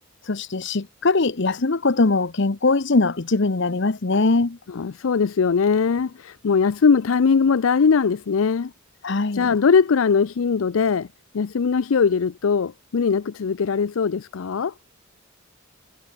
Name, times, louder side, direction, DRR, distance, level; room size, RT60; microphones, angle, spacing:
voice 1, 0.3-4.6 9.0-9.6, left 3 dB, 60° left, 0.9 m, -21 dB
voice 2, 4.7-8.7 9.3-11.1 11.3-14.7, left 5 dB, 75° left, 0.5 m, -20 dB
head